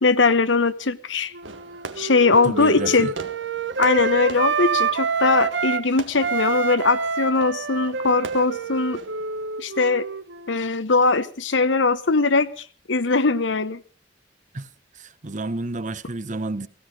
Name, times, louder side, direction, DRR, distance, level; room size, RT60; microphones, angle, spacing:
voice 1, 0.0-1.3 2.0-3.1 3.8-9.0 9.6-10.0 10.5-13.8, left 3 dB, 80° left, 1.1 m, -20 dB
Wind instrument woodwind instrument, 1.3-5.8 6.2-10.7, right 5 dB, 70° right, 1.1 m, -27 dB
Fireworks, 1.4-9.5, right 3 dB, 90° right, 1.8 m, -42 dB
voice 2, 2.4-3.1 14.5-14.7 14.9-16.7, right 2 dB, 45° right, 1.0 m, -30 dB
16.5 x 16.0 x 5.2 m
head